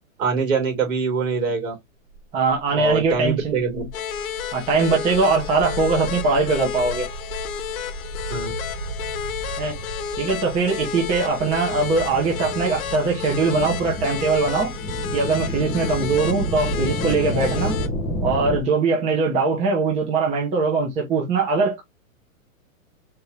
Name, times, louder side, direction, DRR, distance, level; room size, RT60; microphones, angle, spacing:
voice 1, 0.2-1.7 2.7-3.8 8.3-8.5, right 5 dB, 65° right, 2.8 m, -24 dB
sound 1, 2.1-2.2 2.5-18.6, equal, ahead, 0.4 m, -31 dB
voice 2, 2.3-3.9 4.5-7.1 9.6-9.7 10.2-14.7 15.1-17.7 18.2-21.8, right 4 dB, 15° right, 0.8 m, -21 dB
sound 2, 3.9-17.9, left 9 dB, 75° left, 1.0 m, -32 dB
4.4 x 2.7 x 3.3 m
hypercardioid pair, 150°, 42 cm